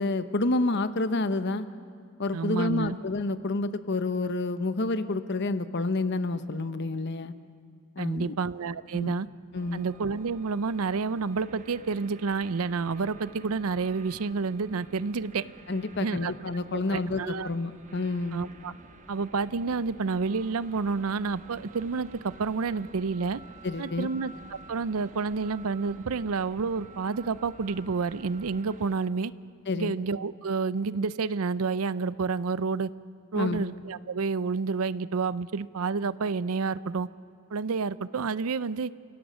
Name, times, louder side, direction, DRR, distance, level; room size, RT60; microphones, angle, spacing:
voice 1, 0.0-1.7 2.2-7.3 8.0-8.3 8.9-9.1 9.5-9.9 15.7-18.4 23.6-24.1 29.7-29.9 33.3-33.7, left 2 dB, 50° left, 12 dB, 0.9 m, -29 dB
voice 2, 2.3-3.0 8.0-9.3 9.7-15.4 16.0-16.3 16.9-17.5 18.3-18.7 19.1-23.4 23.8-29.3 29.7-32.9 33.3-37.1 37.5-38.9, right 4 dB, 80° right, 17 dB, 0.5 m, -29 dB
sound 1, 9.5-29.0, right 2 dB, 35° right, 1.1 m, -50 dB
29.5 x 17.5 x 6.3 m, 2.4 s
head